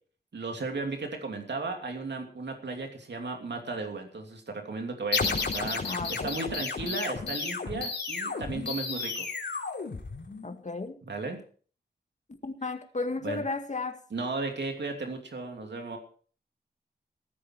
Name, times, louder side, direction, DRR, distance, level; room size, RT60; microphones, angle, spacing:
voice 1, 0.3-9.3 11.1-11.4 13.2-13.4 14.1-16.0, right 3 dB, 80° right, 3 dB, 2.8 m, -35 dB
sound 1, 5.1-10.6, left 4 dB, 80° left, 2.9 m, -32 dB
voice 2, 5.9-6.3 10.4-11.0 12.4-14.0, left 3 dB, 45° left, 6 dB, 2.0 m, -34 dB
15.0 x 13.5 x 4.7 m, 0.43 s
wide cardioid pair, 90°, 18 cm